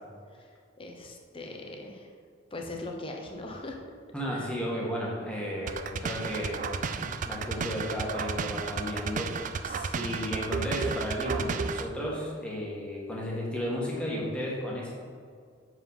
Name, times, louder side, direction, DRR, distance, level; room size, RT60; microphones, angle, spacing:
voice 1, 0.8-2.1 2.5-3.8 4.3-4.5 9.6-10.5, left 2 dB, 30° left, 1 dB, 0.9 m, -40 dB
voice 2, 4.1-9.3 9.9-14.9, equal, 5° left, -5 dB, 1.6 m, -33 dB
sound 1, 5.7-11.9, right 5 dB, 40° right, 0.3 m, -33 dB
7.1 x 5.0 x 5.5 m, 2.1 s
head